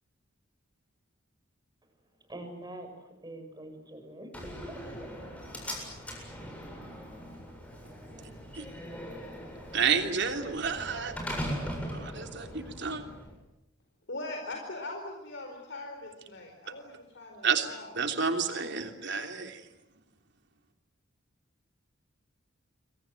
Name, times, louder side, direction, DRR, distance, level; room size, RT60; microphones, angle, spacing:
voice 1, 2.3-2.9 3.2-4.8, right 1 dB, 20° right, 5 dB, 7.0 m, -44 dB
Slam, 4.3-13.3, equal, 5° left, 7.5 m, -40 dB
voice 2, 9.7-11.1 11.9-13.0 17.4-17.7 17.9-19.6, right 6 dB, 60° right, 6 dB, 3.1 m, -30 dB
voice 3, 14.1-17.9, left 2 dB, 65° left, 3 dB, 4.7 m, -41 dB
28.5 x 24.5 x 7.9 m, 0.92 s
head